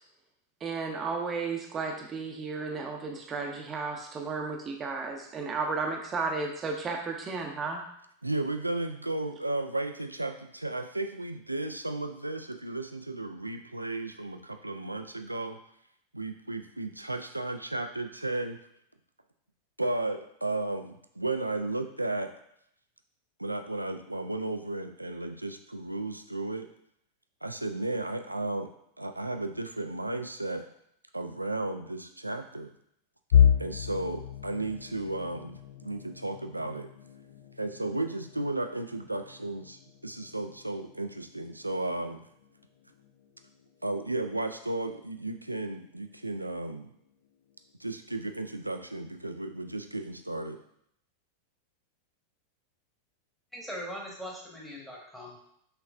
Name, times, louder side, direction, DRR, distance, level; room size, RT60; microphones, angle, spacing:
voice 1, 0.6-7.8, right 4 dB, 25° right, 2 dB, 0.6 m, -33 dB
voice 2, 8.2-15.6 16.1-18.6 19.8-22.3 23.4-26.7 27.4-28.7 29.0-30.6 31.1-32.7 33.6-36.9 37.6-42.2 43.8-46.9 47.8-50.6, right 2 dB, 85° right, 7 dB, 0.3 m, -34 dB
sound 1, 33.3-45.1 45.6-45.8 46.2-46.4 47.2-47.7, left 9 dB, 55° left, 0.4 m, -32 dB
voice 3, 53.5-55.4, equal, 5° left, -3 dB, 1.2 m, -40 dB
5.8 x 3.0 x 2.5 m, 0.72 s
figure-of-eight pair, 90°, 0 cm